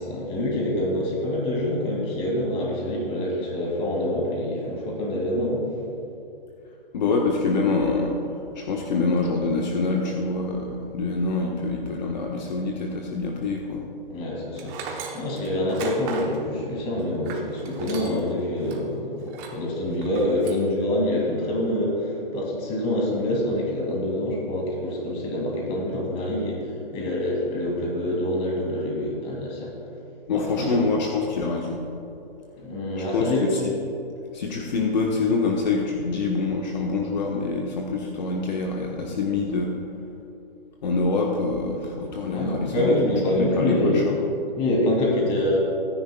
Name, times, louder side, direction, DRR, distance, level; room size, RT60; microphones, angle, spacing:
voice 1, 0.0-5.6 14.1-19.2 19.5-26.6 26.9-29.7 30.3-30.8 32.6-33.4 42.3-44.0 44.6-45.6, left 1 dB, 20° left, -2 dB, 2.4 m, -26 dB
voice 2, 6.9-8.1 8.5-13.8 30.3-31.8 33.0-33.3 33.6-33.7 34.3-39.7 40.8-43.0 43.3-44.2, left 3 dB, 50° left, 0 dB, 1.3 m, -25 dB
Tools, 14.6-18.3 18.7-18.8 19.3-19.6 20.0-20.7, right 5 dB, 20° right, 0.9 m, -37 dB
22.0 x 10.5 x 2.3 m, 2.8 s
hypercardioid pair, 145°, 29 cm